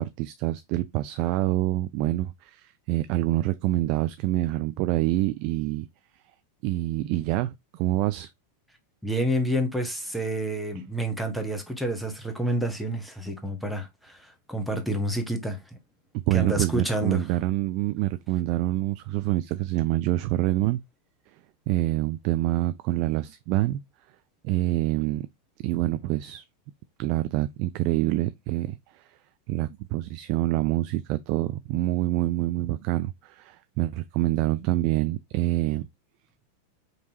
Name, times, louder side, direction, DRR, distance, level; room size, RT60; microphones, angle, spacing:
voice 1, 0.0-5.9 6.6-8.3 16.1-20.8 21.7-23.8 24.4-25.3 25.6-26.4 27.0-29.1 29.5-35.9, right 15 dB, 45° right, 0.3 m, -26 dB
voice 2, 9.0-15.8 16.3-17.2, right 1 dB, ahead, 1.1 m, -29 dB
5.2 x 3.0 x 2.7 m
figure-of-eight pair, 90°, 0 cm